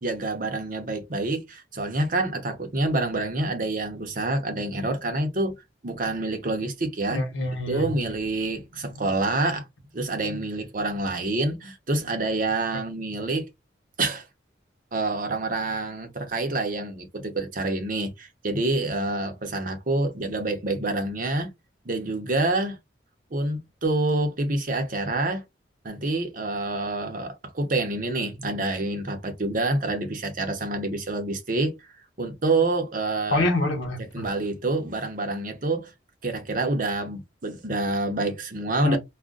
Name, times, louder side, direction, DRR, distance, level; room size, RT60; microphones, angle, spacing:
voice 1, 0.0-5.5 5.8-7.2 7.7-9.7 9.9-13.5 14.0-14.2 14.9-21.5 21.8-22.8 23.3-25.4 25.8-31.8 32.2-33.4 34.1-35.9 36.2-39.0, right 2 dB, 45° right, 0.7 m, -27 dB
voice 2, 7.1-8.0 33.3-34.3 38.8-39.0, left 2 dB, 80° left, 1.0 m, -25 dB
2.4 x 2.1 x 3.7 m
head